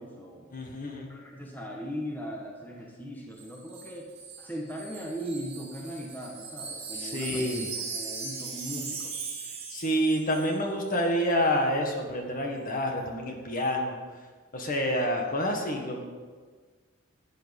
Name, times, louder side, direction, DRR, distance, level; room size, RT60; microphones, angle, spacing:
voice 1, 0.0-0.5 1.0-4.1 4.4-7.4 7.8-9.1, equal, 10° left, -2 dB, 1.3 m, -38 dB
voice 2, 0.5-1.1 7.0-7.7 9.7-13.9 14.5-16.0, equal, 40° left, 2 dB, 1.7 m, -28 dB
Wind chime, 3.4-10.6 10.9-11.1, right 5 dB, 30° right, 3.0 m, -39 dB
12.5 x 9.1 x 5.3 m, 1.5 s
head